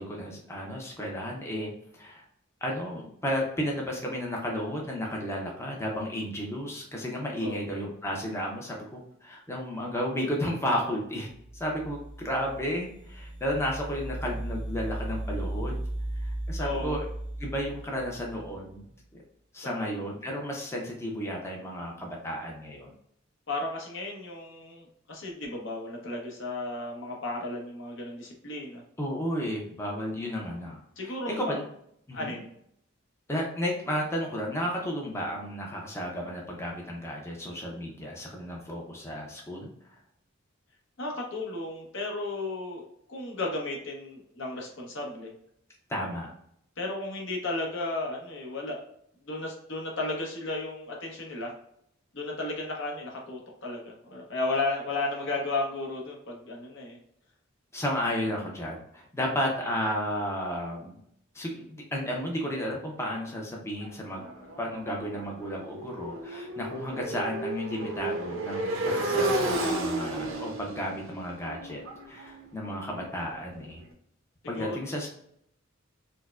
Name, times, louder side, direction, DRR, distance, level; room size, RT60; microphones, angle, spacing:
voice 1, 0.0-2.2 2.6-11.3 11.6-15.8 16.2-17.1 17.4-19.2 19.5-22.9 29.0-30.8 31.3-31.6 32.1-32.4 33.3-39.7 45.9-46.3 57.7-61.0 61.3-64.2 64.6-71.8 72.1-73.8 74.5-75.1, equal, 15° left, -1 dB, 0.5 m, -33 dB
sound 1, 11.3-18.8, right 1 dB, 40° right, 0.6 m, -36 dB
voice 2, 16.6-17.0 19.6-19.9 23.5-28.8 31.0-31.6 32.1-32.5 41.0-45.3 46.8-48.8 49.2-51.5 52.1-57.0 74.5-74.8, left 2 dB, 65° left, 0 dB, 0.9 m, -34 dB
Motorcycle, 63.8-73.6, right 1 dB, 80° right, 0.6 m, -33 dB
4.5 x 2.1 x 2.3 m, 0.70 s
head